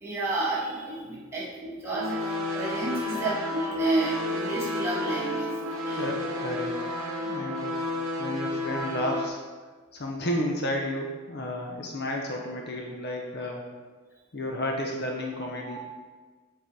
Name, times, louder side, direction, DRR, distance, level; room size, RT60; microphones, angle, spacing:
voice 1, 0.0-6.1 15.3-15.8, right 2 dB, 10° right, -8 dB, 1.6 m, -31 dB
sound 1, 1.9-9.3, left 1 dB, 60° right, 0.9 m, -31 dB
voice 2, 6.0-6.8 7.2-7.8 8.2-9.4 9.9-13.6 14.3-15.8, left 1 dB, 50° left, 0 dB, 0.7 m, -32 dB
6.5 x 3.9 x 4.6 m, 1.4 s
head